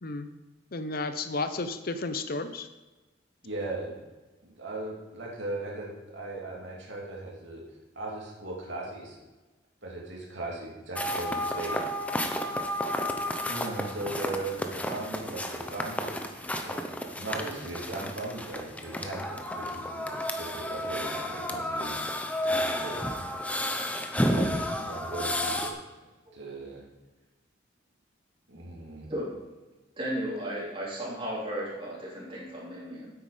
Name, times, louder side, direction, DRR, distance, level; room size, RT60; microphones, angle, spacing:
voice 1, 0.7-2.7, left 3 dB, 50° left, 10 dB, 0.7 m, -32 dB
voice 2, 3.4-4.0 4.4-7.6 7.9-9.2 9.8-11.8 13.5-20.1 20.3-22.0 22.5-23.2 24.2-25.7 26.3-26.8 28.5-29.1, right 2 dB, 75° right, -2 dB, 2.7 m, -38 dB
sound 1, 11.0-25.7, left 1 dB, 10° left, 0.7 m, -32 dB
voice 3, 30.0-33.1, equal, 30° right, -6 dB, 3.2 m, -34 dB
9.0 x 8.4 x 5.0 m, 1.2 s
head